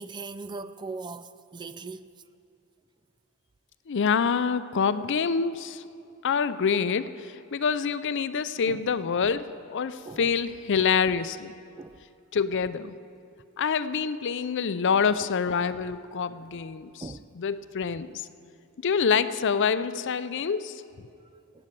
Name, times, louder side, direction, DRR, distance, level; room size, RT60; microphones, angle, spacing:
voice 1, 0.0-2.1 8.7-8.8 10.0-10.3 11.8-12.0 14.9-15.3 16.4-16.6 17.0-17.3, right 3 dB, 20° right, 0.3 m, -40 dB
voice 2, 3.9-5.8 6.2-7.1 7.5-11.5 12.3-12.9 13.6-17.0 17.4-18.1 18.8-20.7, left 6 dB, 60° left, 0.5 m, -26 dB
16.0 x 8.9 x 7.5 m
head